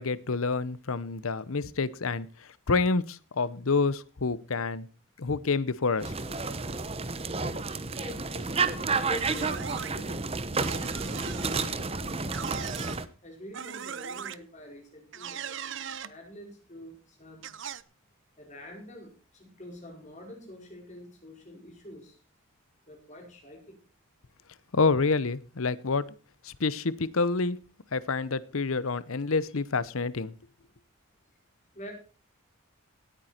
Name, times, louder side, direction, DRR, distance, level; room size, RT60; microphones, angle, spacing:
voice 1, 0.0-2.3 2.7-4.9 5.2-6.1 24.7-26.0 26.4-27.6 27.9-30.3, left 4 dB, 70° left, 18 dB, 0.8 m, -28 dB
sound 1, 6.0-13.0, right 4 dB, 25° right, 0.8 m, -31 dB
voice 2, 7.8-12.6 13.2-15.6 16.0-17.4 18.4-22.2 22.9-23.8 31.7-31.9, equal, 35° left, 1 dB, 4.9 m, -46 dB
sound 2, 9.1-9.9 10.6-11.7 12.3-13.0 13.5-14.4 15.1-16.1 17.4-17.8, right 8 dB, 55° right, 0.6 m, -39 dB
17.5 x 9.2 x 4.4 m, 0.35 s
head